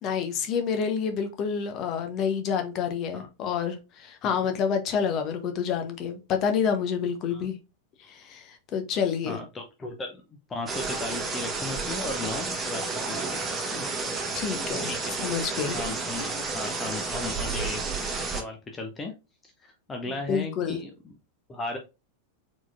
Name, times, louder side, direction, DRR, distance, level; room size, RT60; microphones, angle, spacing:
voice 1, 0.0-7.6 8.1-9.4 14.3-14.9 15.2-15.8 20.3-20.8, left 7 dB, 35° left, 1.0 m, -28 dB
voice 2, 9.2-10.2 10.5-13.9 14.8-15.2 15.7-16.3 16.5-17.8 18.3-19.1 19.4-21.2 21.5-21.8, left 2 dB, 20° left, 0.8 m, -36 dB
sound 1, 10.7-18.4, right 3 dB, 15° right, 1.2 m, -31 dB
4.5 x 4.1 x 2.6 m
figure-of-eight pair, 90°, 0 cm